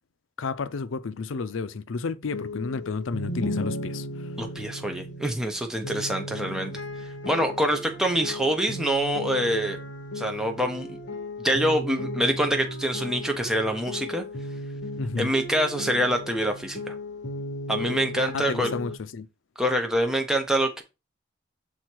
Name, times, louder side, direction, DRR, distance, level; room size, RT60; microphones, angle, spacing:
voice 1, 0.4-4.1 15.0-15.3 18.3-19.3, left 4 dB, 75° left, 0.5 m, -31 dB
sound 1, 2.2-19.0, left 1 dB, 60° left, 1.1 m, -35 dB
voice 2, 4.4-6.7 7.2-9.8 10.1-11.0 11.4-14.2 15.2-17.0 17.7-18.7 19.6-20.8, equal, 5° right, 0.9 m, -25 dB
6.4 x 4.2 x 4.5 m
head